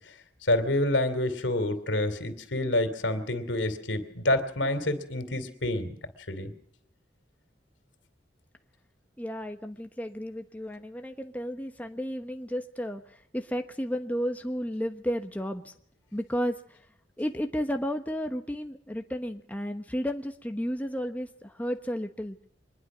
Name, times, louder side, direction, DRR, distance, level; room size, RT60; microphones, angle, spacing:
voice 1, 0.4-6.0 6.3-6.5, left 1 dB, 75° left, 10 dB, 3.0 m, -28 dB
voice 2, 9.2-13.0 13.3-15.7 16.1-16.5 17.2-22.4, equal, 10° left, 5 dB, 1.1 m, -32 dB
24.0 x 21.0 x 6.2 m, 0.64 s
head